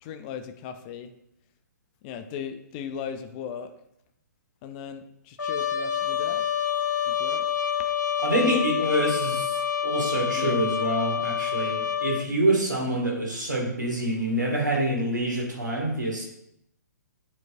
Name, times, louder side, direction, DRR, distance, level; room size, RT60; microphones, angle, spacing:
voice 1, 0.0-1.1 2.0-3.7 4.6-6.5 7.1-7.5 8.3-9.0 10.4-10.6, left 8 dB, 25° left, 9 dB, 0.4 m, -36 dB
Trumpet, 5.4-12.3, left 8 dB, 75° left, 0.8 m, -27 dB
voice 2, 8.2-16.2, right 1 dB, 80° right, -1 dB, 1.9 m, -26 dB
8.5 x 4.5 x 2.6 m, 0.77 s
figure-of-eight pair, 125°, 10 cm